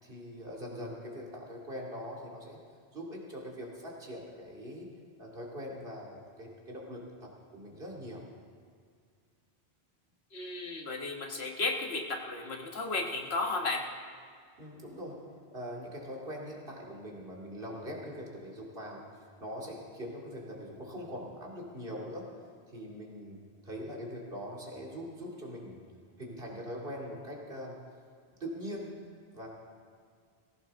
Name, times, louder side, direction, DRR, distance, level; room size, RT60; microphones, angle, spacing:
voice 1, 0.0-2.6 2.9-4.9 5.2-8.2 14.6-15.2 15.5-22.3 22.7-25.8 26.2-27.8 28.4-28.9 29.3-29.5, equal, 65° right, -2 dB, 2.7 m, -42 dB
voice 2, 10.3-13.8, left 3 dB, 80° left, 2 dB, 1.7 m, -34 dB
19.5 x 16.0 x 3.6 m, 2.1 s
omnidirectional pair, 1.0 m